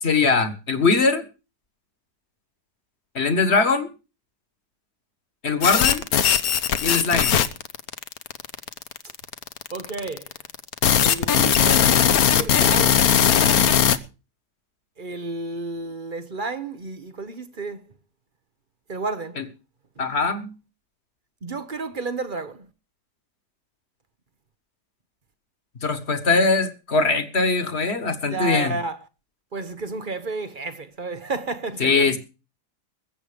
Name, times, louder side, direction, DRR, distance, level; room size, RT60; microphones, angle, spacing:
voice 1, 0.0-1.2 3.2-3.9 5.4-6.0 6.8-7.4 19.4-19.5 20.0-20.5 25.8-28.7 31.8-32.2, left 4 dB, 40° left, 1.9 m, -21 dB
sound 1, 5.6-14.0, left 8 dB, 65° left, 1.3 m, -19 dB
voice 2, 9.7-10.3 11.0-13.2 15.0-17.9 18.9-19.4 21.4-22.7 28.3-29.0 29.5-32.2, right 3 dB, 35° right, 1.0 m, -32 dB
21.0 x 8.0 x 5.1 m
omnidirectional pair, 1.7 m